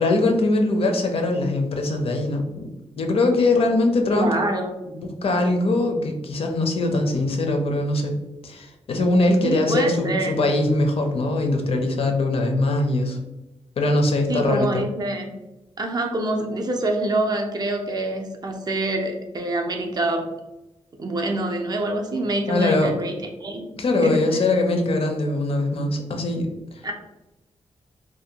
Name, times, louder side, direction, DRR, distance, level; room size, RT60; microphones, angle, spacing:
voice 1, 0.0-2.7 3.0-4.3 5.0-13.2 13.8-14.8 22.5-22.9 23.8-26.5, left 2 dB, 55° left, 3 dB, 0.4 m, -22 dB
voice 2, 4.1-4.7 9.4-10.4 14.3-15.3 15.8-20.3 21.0-23.1 23.4-23.7 24.0-24.4 26.8-26.9, right 2 dB, 35° right, 3 dB, 0.4 m, -26 dB
2.5 x 2.2 x 2.7 m, 0.98 s
wide cardioid pair, 135°, 12 cm